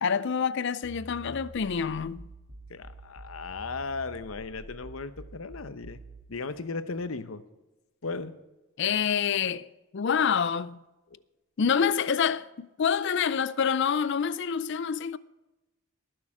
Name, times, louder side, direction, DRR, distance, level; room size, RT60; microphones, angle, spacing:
voice 1, 0.0-2.3 8.8-9.7 9.9-10.8 11.6-15.2, left 7 dB, 55° left, 0.4 m, -27 dB
sound 1, 0.8-6.3, right 1 dB, 70° right, 3.0 m, -47 dB
voice 2, 2.7-6.0 6.3-7.4 8.0-8.3, left 4 dB, 75° left, 0.8 m, -36 dB
19.5 x 6.6 x 4.8 m
head